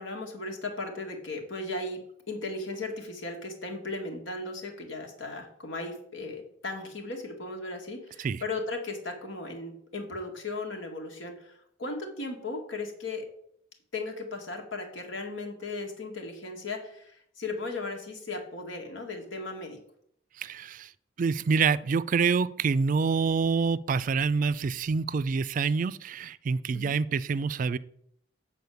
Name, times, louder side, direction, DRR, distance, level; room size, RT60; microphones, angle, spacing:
voice 1, 0.0-2.0 2.3-13.3 13.9-19.8 26.7-27.0, left 2 dB, 85° left, 3 dB, 1.9 m, -36 dB
voice 2, 20.4-20.9 21.2-27.8, right 5 dB, 45° right, 16 dB, 0.3 m, -26 dB
8.1 x 4.2 x 7.0 m, 0.68 s
head